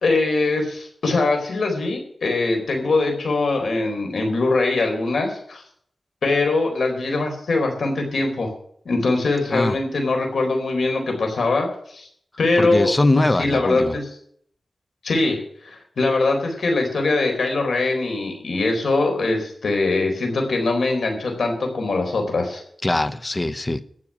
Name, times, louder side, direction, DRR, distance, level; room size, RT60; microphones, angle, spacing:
voice 1, 0.0-5.6 6.2-8.5 8.8-12.1 12.4-12.9 13.4-14.0 15.0-22.6, left 3 dB, 85° left, 4.1 m, -22 dB
voice 2, 12.6-14.0 22.8-23.8, left 2 dB, 25° left, 0.9 m, -21 dB
14.5 x 6.3 x 10.0 m
wide cardioid pair, 75°, 0 cm